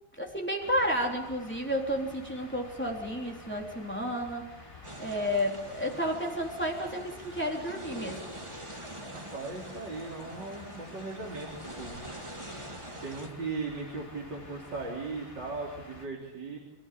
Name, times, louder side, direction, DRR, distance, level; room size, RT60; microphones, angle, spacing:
voice 1, 0.2-4.5 5.0-8.2, equal, 5° left, 0 dB, 3.6 m, -31 dB
sound 1, 0.6-16.1, left 2 dB, 40° left, 4.8 m, -50 dB
sound 2, 4.8-13.3, right 1 dB, 15° right, 2.3 m, -44 dB
voice 2, 9.1-11.5 11.8-12.0 13.0-16.6, right 3 dB, 55° right, -3 dB, 4.4 m, -38 dB
26.5 x 15.5 x 8.6 m, 0.93 s
omnidirectional pair, 2.3 m